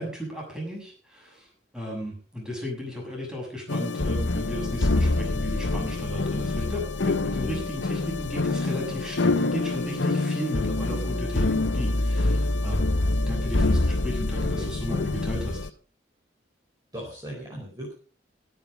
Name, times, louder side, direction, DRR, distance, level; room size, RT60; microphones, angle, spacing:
voice 1, 0.0-15.7, equal, 5° right, -2 dB, 6.7 m, -35 dB
sound 1, 3.7-15.7, left 2 dB, 85° left, 1.0 m, -26 dB
voice 2, 14.5-15.1 16.9-17.9, right 1 dB, 20° right, -4 dB, 4.9 m, -38 dB
16.5 x 10.0 x 5.2 m, 0.38 s
head